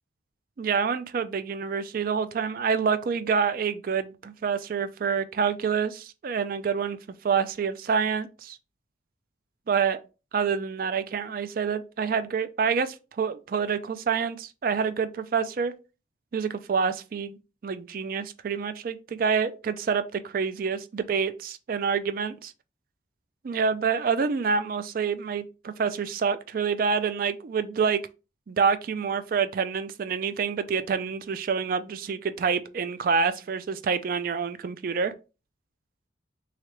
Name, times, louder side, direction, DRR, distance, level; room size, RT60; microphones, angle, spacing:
voice 1, 0.6-7.0 7.2-8.6 9.7-10.0 10.3-15.7 16.3-17.4 17.6-22.5 23.4-28.0 28.5-35.1, right 6 dB, 45° right, 0.3 m, -27 dB
3.7 x 3.2 x 3.0 m
head